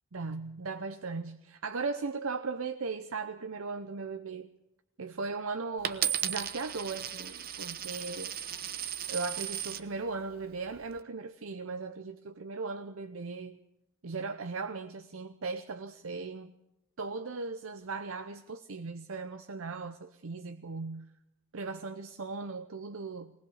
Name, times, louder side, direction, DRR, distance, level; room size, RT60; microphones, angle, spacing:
voice 1, 0.1-4.5 5.0-8.4 9.1-13.6 14.0-16.5 17.0-21.1 21.5-23.4, right 4 dB, 70° right, 0.8 m, -38 dB
Coin (dropping), 5.8-9.9 10.6-11.0, right 10 dB, 45° right, 0.9 m, -35 dB
21.0 x 19.5 x 7.2 m
head